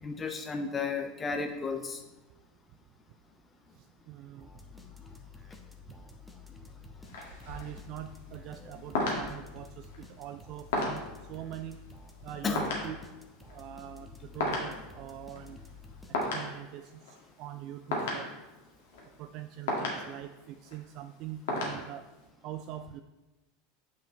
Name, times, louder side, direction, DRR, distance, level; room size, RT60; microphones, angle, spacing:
voice 1, 0.0-2.0 12.4-12.6, left 4 dB, 25° left, 4 dB, 0.7 m, -33 dB
voice 2, 3.7-4.5 6.8-6.9 7.5-11.0 11.3-11.8 12.2-13.0 13.5-15.6 16.3-18.3 19.2-22.1 22.4-23.0, right 11 dB, 50° right, 9 dB, 0.3 m, -43 dB
sound 1, 4.4-16.6, left 4 dB, ahead, 1.0 m, -51 dB
sound 2, 7.0-22.3, left 2 dB, 70° left, 1.8 m, -37 dB
8.6 x 5.2 x 3.1 m, 1.1 s
hypercardioid pair, 85°, 0 cm